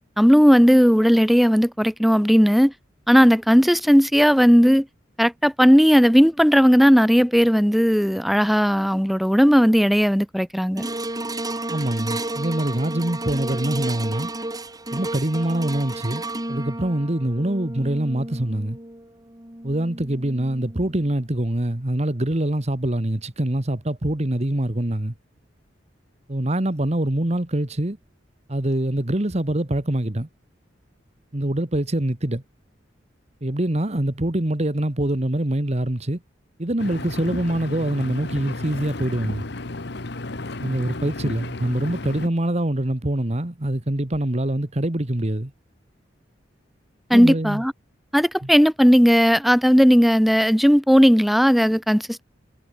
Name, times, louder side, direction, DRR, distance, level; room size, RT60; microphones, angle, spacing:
voice 1, 0.2-2.7 3.1-4.9 5.2-10.9 47.1-47.7 48.1-52.2, equal, ahead, 2.2 m, -16 dB
sound 1, 10.8-21.2 21.7-21.8, right 2 dB, 20° right, 4.3 m, -32 dB
voice 2, 11.7-14.3 14.9-16.2 16.5-18.8 19.6-25.1 26.3-28.0 28.5-30.3 31.3-32.4 33.4-36.2 36.6-39.4 40.6-45.5 47.1-47.6 48.4-48.5, right 1 dB, 35° right, 1.5 m, -24 dB
Engine, 36.8-42.3, left 2 dB, 65° left, 1.4 m, -33 dB
head